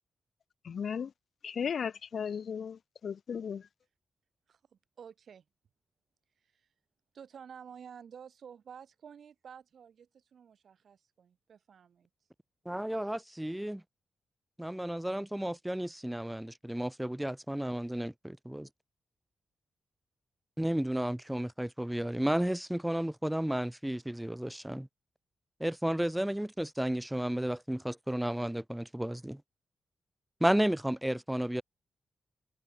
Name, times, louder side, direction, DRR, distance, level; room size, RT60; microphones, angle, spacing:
voice 1, 0.7-1.1 1.4-2.8 3.0-3.6, left 7 dB, 60° left, 1.0 m, -35 dB
voice 2, 4.5-5.4 6.4-6.7 7.1-12.1, right 7 dB, 65° right, 6.9 m, -51 dB
voice 3, 12.6-13.8 14.6-18.7 20.6-24.9 25.6-29.4 30.4-31.6, right 1 dB, 5° right, 1.3 m, -32 dB
wide cardioid pair, 125°, 0 cm